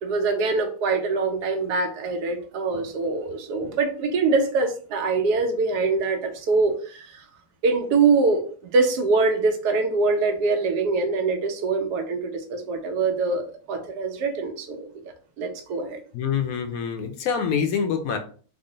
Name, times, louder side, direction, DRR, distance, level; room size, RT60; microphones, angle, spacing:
voice 1, 0.0-7.2 7.6-8.4 8.7-13.4 13.7-14.8 15.4-16.0, right 4 dB, 85° right, 5 dB, 1.2 m, -23 dB
voice 2, 16.1-18.2, left 7 dB, 70° left, 6 dB, 0.9 m, -26 dB
3.6 x 2.0 x 3.7 m, 0.42 s
omnidirectional pair, 1.7 m